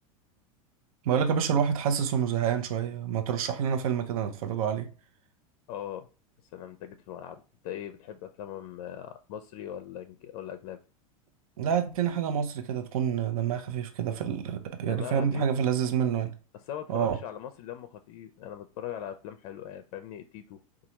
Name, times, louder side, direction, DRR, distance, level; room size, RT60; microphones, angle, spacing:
voice 1, 1.0-4.9 11.6-16.3 16.9-17.2, right 8 dB, 75° right, 0.7 m, -28 dB
voice 2, 5.7-6.1 6.5-10.8 14.8-15.5 16.5-20.6, left 10 dB, 60° left, 0.4 m, -40 dB
4.2 x 2.3 x 2.9 m
hypercardioid pair, 100°, 18 cm